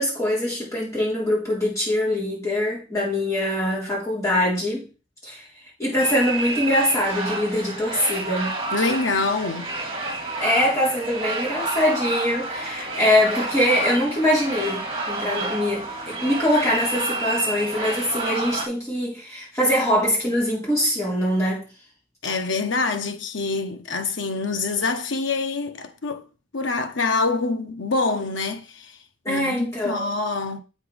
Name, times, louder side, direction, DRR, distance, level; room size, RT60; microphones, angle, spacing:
voice 1, 0.0-4.9 5.2-5.5 5.8-8.6 10.4-21.7 29.2-30.1, left 1 dB, 15° left, 3.9 m, -23 dB
sound 1, 6.0-18.7, right 2 dB, 30° right, 1.9 m, -30 dB
voice 2, 8.7-9.8 22.2-26.2 26.5-29.0 29.3-30.6, left 3 dB, 85° left, 1.0 m, -25 dB
8.0 x 4.5 x 4.9 m
head